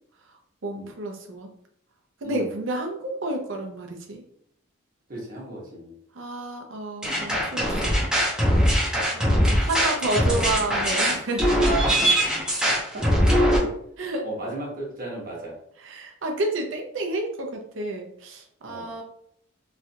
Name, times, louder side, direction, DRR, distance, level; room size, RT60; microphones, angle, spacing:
voice 1, 0.6-1.5 2.2-4.2 6.1-8.2 9.1-11.8 14.0-14.2 15.8-19.0, right 2 dB, 70° right, 2 dB, 0.6 m, -30 dB
voice 2, 5.1-5.9 12.7-13.7 14.2-15.5 18.6-18.9, right 1 dB, 45° right, -3 dB, 1.0 m, -35 dB
sound 1, 7.0-13.6, equal, 5° right, 0.6 m, -21 dB
3.1 x 2.4 x 2.7 m, 0.69 s
head